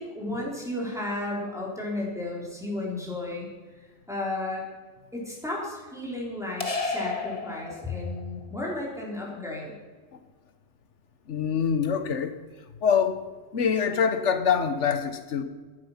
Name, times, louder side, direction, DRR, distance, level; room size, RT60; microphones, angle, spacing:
voice 1, 0.0-3.5 3.8-4.6 5.1-9.8, left 2 dB, ahead, -4 dB, 3.6 m, -33 dB
sound 1, 6.6-8.3, left 3 dB, 30° left, 1.4 m, -32 dB
voice 2, 11.3-12.3 12.8-13.2 13.5-15.4, left 7 dB, 70° left, 10 dB, 1.4 m, -24 dB
14.0 x 11.0 x 5.8 m, 1.4 s
omnidirectional pair, 1.3 m